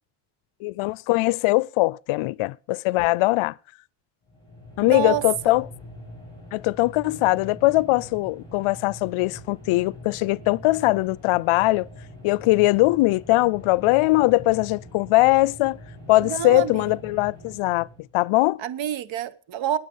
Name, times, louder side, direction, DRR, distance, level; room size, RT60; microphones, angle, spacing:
voice 1, 0.6-3.6 4.8-5.6 6.5-11.9 12.2-15.8 16.1-17.9 18.1-18.6, left 20 dB, 85° left, 0.5 m, -21 dB
sound 1, 4.3-18.1, left 1 dB, 10° left, 7.1 m, -43 dB
voice 2, 4.8-5.2 16.2-16.9 18.6-19.8, right 10 dB, 70° right, 1.1 m, -28 dB
19.5 x 8.1 x 5.4 m
cardioid pair, 165°, 48 cm